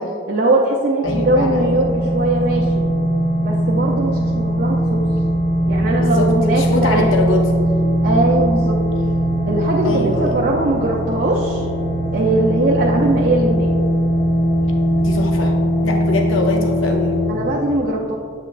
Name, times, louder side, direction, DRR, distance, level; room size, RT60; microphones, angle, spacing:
voice 1, 0.3-2.8 3.4-5.0 5.7-7.1 8.0-8.8 9.5-11.6 12.1-13.7 17.3-18.2, right 2 dB, 45° right, -3 dB, 0.5 m, -20 dB
voice 2, 1.0-1.7 5.9-7.5 9.8-10.4 15.0-15.5 15.8-17.2, left 2 dB, 85° left, 2 dB, 0.6 m, -23 dB
sound 1, 1.0-17.3, right 1 dB, 30° left, 1.2 m, -19 dB
8.0 x 5.9 x 2.4 m, 2.3 s
head